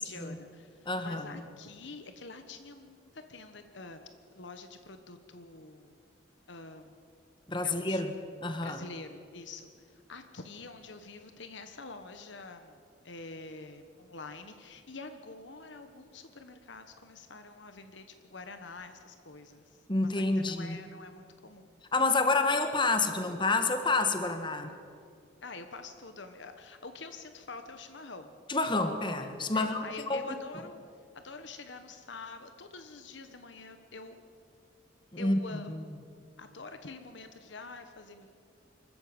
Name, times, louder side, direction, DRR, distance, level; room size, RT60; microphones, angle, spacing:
voice 1, 0.0-4.1 4.3-6.0 6.5-7.0 7.6-8.0 8.6-12.8 13.0-21.7 25.4-28.4 29.5-30.8 31.1-34.2 35.2-35.8 36.4-38.3, left 3 dB, 65° left, 8 dB, 1.2 m, -46 dB
voice 2, 0.8-1.4 7.5-8.1 8.4-8.8 19.9-20.8 21.9-24.7 28.5-30.2 35.1-35.8, left 3 dB, 25° left, 7 dB, 1.6 m, -29 dB
25.0 x 14.5 x 8.9 m, 2.3 s
head